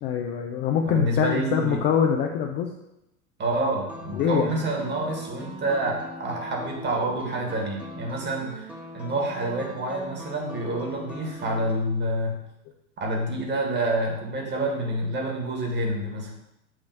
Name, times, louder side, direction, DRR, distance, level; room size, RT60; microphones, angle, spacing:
voice 1, 0.0-2.7 4.1-4.6, left 8 dB, 25° left, 2 dB, 0.4 m, -24 dB
voice 2, 0.8-1.8 3.4-12.4 13.0-16.3, right 1 dB, 25° right, 1 dB, 1.6 m, -28 dB
sound 1, 3.8-11.7, left 1 dB, 5° right, 1.2 m, -41 dB
7.6 x 3.1 x 4.8 m, 0.88 s
figure-of-eight pair, 90°, 42 cm